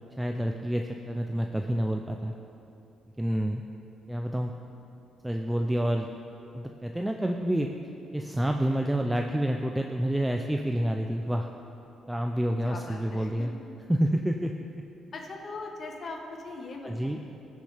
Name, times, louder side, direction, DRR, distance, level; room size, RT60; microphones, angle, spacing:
voice 1, 0.2-2.3 3.2-3.6 4.1-4.5 5.2-6.1 6.5-7.7 8.1-11.5 12.1-13.5 13.9-14.5 16.8-17.2, right 1 dB, 5° right, 3 dB, 0.4 m, -28 dB
voice 2, 12.6-13.5 15.1-17.2, left 3 dB, 50° left, 1 dB, 1.3 m, -40 dB
16.0 x 6.5 x 3.4 m, 2.9 s
cardioid pair, 90°, 0 cm